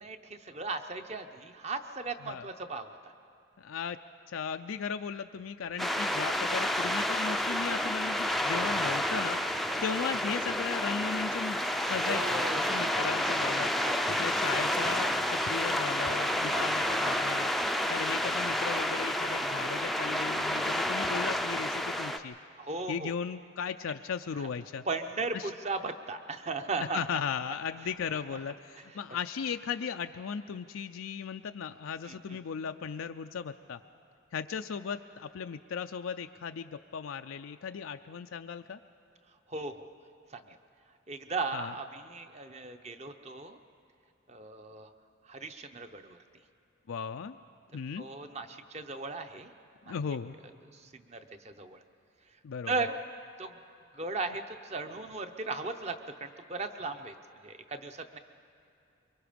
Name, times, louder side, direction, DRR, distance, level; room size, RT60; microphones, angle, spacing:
voice 1, 0.0-3.1 9.7-9.8 12.1-13.1 13.8-14.3 16.5-16.8 22.6-23.1 24.4-24.5 24.9-27.0 32.0-32.2 39.5-39.9 40.3-40.6 41.1-43.6 44.3-44.9 45.2-46.2 48.0-49.5 49.8-49.9 50.7-51.8 52.7-53.0 53.4-53.5 53.9-57.2 57.4-58.2, right 3 dB, 30° right, 7 dB, 0.8 m, -37 dB
voice 2, 3.6-4.0 4.3-13.7 14.1-17.5 17.9-22.4 22.9-24.8 25.3-25.5 26.8-33.8 34.3-38.8 41.5-41.7 46.9-47.4 47.7-48.1 49.9-50.3 52.4-52.9, left 6 dB, 85° left, 7 dB, 0.4 m, -37 dB
sound 1, 5.8-22.2, left 1 dB, ahead, 0.4 m, -30 dB
24.5 x 23.0 x 5.1 m, 2.4 s
head